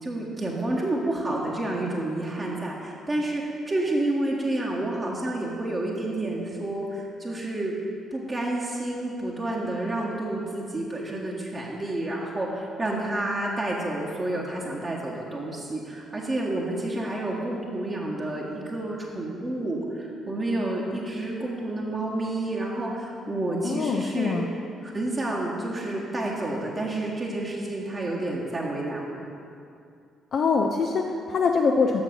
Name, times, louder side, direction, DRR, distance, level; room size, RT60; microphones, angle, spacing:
voice 1, 0.0-7.7 8.1-24.4 24.8-29.2, right 1 dB, 30° right, -4 dB, 1.3 m, -29 dB
voice 2, 23.6-24.4 30.3-32.0, left 5 dB, 50° left, 2 dB, 0.4 m, -24 dB
7.2 x 6.7 x 5.3 m, 2.5 s
figure-of-eight pair, 45°, 0 cm